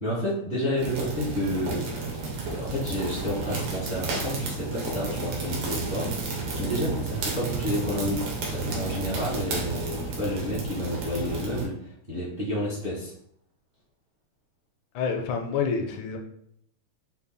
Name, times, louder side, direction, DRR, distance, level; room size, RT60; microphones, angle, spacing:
voice 1, 0.0-2.2 2.5-13.1, left 1 dB, 40° right, -9 dB, 0.7 m, -30 dB
sound 1, 0.8-11.7, right 3 dB, 65° right, 1.4 m, -32 dB
voice 2, 15.0-16.2, left 5 dB, 80° left, 3 dB, 1.7 m, -28 dB
6.8 x 2.7 x 2.2 m, 0.71 s
omnidirectional pair, 3.6 m